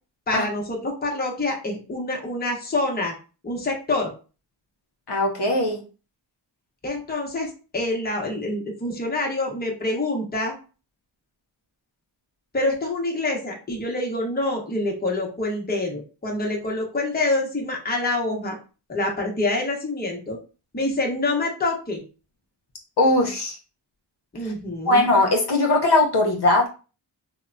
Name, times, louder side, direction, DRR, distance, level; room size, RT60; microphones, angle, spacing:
voice 1, 0.3-3.1 3.4-4.1 6.8-10.5 12.5-18.6 18.9-20.4 20.7-22.0 24.3-25.1, left 2 dB, 20° left, 0 dB, 0.8 m, -26 dB
voice 2, 5.1-5.8 23.0-23.6 24.4-24.5 24.9-26.7, left 2 dB, 55° left, -1 dB, 0.8 m, -20 dB
2.9 x 2.1 x 2.5 m, 0.34 s
cardioid pair, 75°, 49 cm